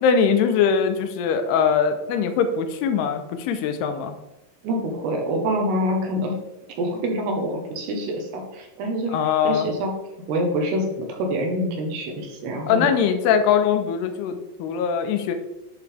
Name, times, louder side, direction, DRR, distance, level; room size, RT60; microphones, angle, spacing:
voice 1, 0.0-4.2 9.1-9.7 12.7-15.3, left 7 dB, 80° left, 8 dB, 2.6 m, -21 dB
voice 2, 4.6-6.3 6.8-9.2 9.4-9.9 10.3-13.0, equal, 80° right, 1 dB, 3.2 m, -26 dB
10.5 x 4.6 x 3.4 m, 1.0 s
omnidirectional pair, 4.9 m